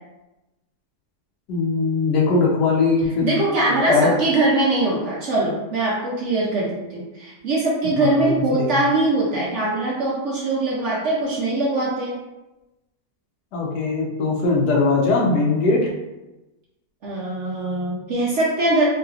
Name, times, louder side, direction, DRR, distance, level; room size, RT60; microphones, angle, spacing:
voice 1, 1.5-3.4 3.7-4.1 8.0-8.8 13.5-15.9, left 3 dB, 80° left, -2 dB, 1.3 m, -20 dB
voice 2, 3.2-12.2 17.0-18.8, right 2 dB, 65° right, -5 dB, 0.7 m, -22 dB
3.2 x 3.0 x 2.3 m, 1.0 s
omnidirectional pair, 1.7 m